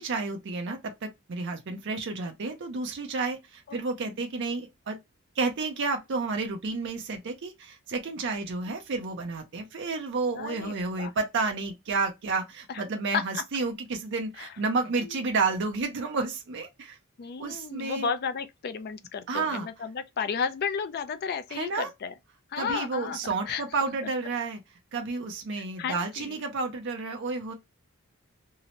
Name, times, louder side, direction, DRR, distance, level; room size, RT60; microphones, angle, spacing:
voice 1, 0.0-5.0 5.4-17.0 17.4-18.1 19.3-19.7 21.5-21.9 22.6-24.6 24.9-27.5, right 3 dB, 55° right, 0.5 m, -31 dB
voice 2, 10.3-11.1 12.7-12.8 13.1-13.4 14.4-14.5 15.0-15.2 17.2-22.1 22.5-23.2 23.5-23.6 25.6-26.4, left 6 dB, 45° left, 0.3 m, -33 dB
2.7 x 2.0 x 2.8 m
head